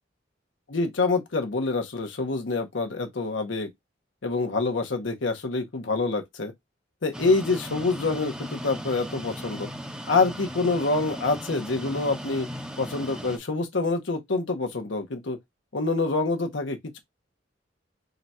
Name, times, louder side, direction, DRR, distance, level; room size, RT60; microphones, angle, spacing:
voice 1, 0.7-3.7 4.2-6.5 7.0-9.7 10.1-12.5 12.8-15.4 15.7-17.0, left 3 dB, 80° left, 0.8 m, -26 dB
sound 1, 7.1-13.4, equal, 5° right, 0.5 m, -37 dB
3.7 x 2.3 x 4.1 m
head